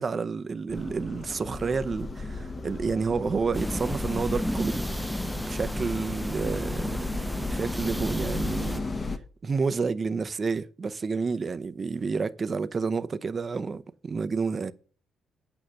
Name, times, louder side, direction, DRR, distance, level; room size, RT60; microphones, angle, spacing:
voice 1, 0.0-4.9 5.4-7.0 7.4-8.8 9.4-14.7, right 4 dB, 35° right, 0.7 m, -30 dB
sound 1, 0.7-9.2, left 3 dB, 30° left, 1.1 m, -35 dB
sound 2, 3.5-8.8, equal, ahead, 0.5 m, -32 dB
8.9 x 5.6 x 6.3 m
cardioid pair, 90°, 0 cm